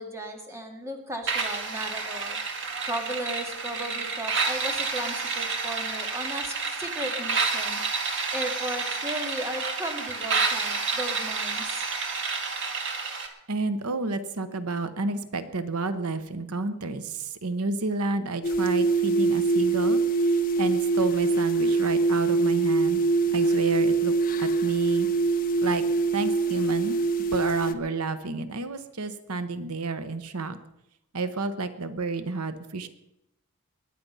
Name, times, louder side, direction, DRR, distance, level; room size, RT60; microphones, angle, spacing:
voice 1, 0.0-2.4 2.9-7.9 8.3-12.0, right 1 dB, 15° right, 3 dB, 2.1 m, -35 dB
sound 1, 1.3-13.3, right 4 dB, 55° right, 1.9 m, -29 dB
voice 2, 13.5-23.0 23.3-24.1 24.4-25.1 25.6-25.8 26.1-27.0 27.3-30.6 31.1-32.9, right 3 dB, 85° right, 11 dB, 1.0 m, -30 dB
sound 2, 18.4-27.7, right 3 dB, 40° left, 0.7 m, -24 dB
22.0 x 9.6 x 5.6 m, 0.84 s
head